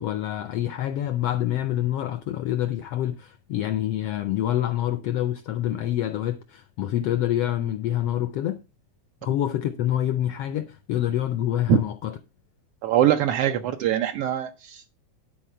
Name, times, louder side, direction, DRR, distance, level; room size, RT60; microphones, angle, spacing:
voice 1, 0.0-8.6 9.2-12.1, left 12 dB, 85° left, 1.3 m, -26 dB
voice 2, 12.8-14.9, right 11 dB, 80° right, 1.3 m, -22 dB
11.5 x 4.5 x 5.6 m
omnidirectional pair, 3.4 m